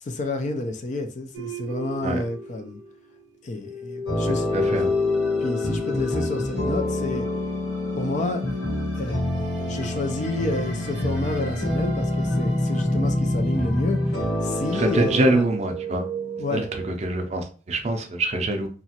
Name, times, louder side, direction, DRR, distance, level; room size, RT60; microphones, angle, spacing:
voice 1, 0.0-2.8 3.4-4.5 5.4-7.3 8.0-8.4 9.0-15.2 16.4-16.7, left 2 dB, 40° left, 0.4 m, -30 dB
sound 1, 1.3-3.3 3.6-7.4 9.0-12.3 12.5-16.9, left 3 dB, 85° right, 0.5 m, -32 dB
sound 2, 4.1-15.4, left 1 dB, 65° left, 1.3 m, -27 dB
voice 2, 4.5-4.9 14.7-16.0 16.5-18.7, right 1 dB, 40° right, 0.5 m, -24 dB
2.8 x 2.4 x 2.8 m
head